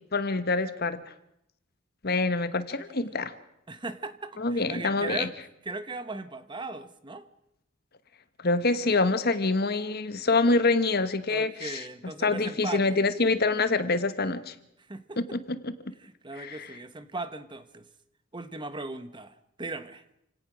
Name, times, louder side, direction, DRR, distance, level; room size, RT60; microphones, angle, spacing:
voice 1, 0.1-1.0 2.0-3.3 4.4-5.3 8.4-11.8 12.2-14.5 15.2-15.7 16.4-16.7, left 3 dB, 55° left, 12 dB, 1.3 m, -26 dB
voice 2, 3.7-5.3 5.6-7.2 11.3-12.8 14.9-15.2 16.0-17.9 18.3-20.0, right 3 dB, 25° right, 12 dB, 1.2 m, -38 dB
28.5 x 17.5 x 6.3 m, 0.79 s
head